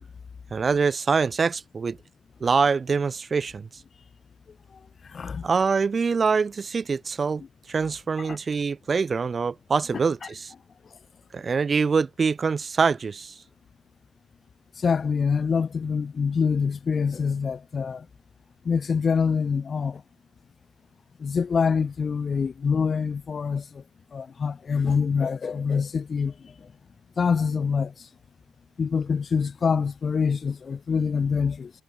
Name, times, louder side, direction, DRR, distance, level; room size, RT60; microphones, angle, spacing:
voice 1, 0.5-2.0 2.4-3.7 5.4-7.4 7.7-10.5 11.3-13.3, right 5 dB, 35° right, 2.0 m, -24 dB
voice 2, 5.1-5.4 8.2-8.4 14.8-18.1 18.6-20.0 21.2-23.8 24.1-26.7 27.2-27.9 28.8-31.7, left 5 dB, 40° left, 2.8 m, -25 dB
cardioid pair, 90°, 0 cm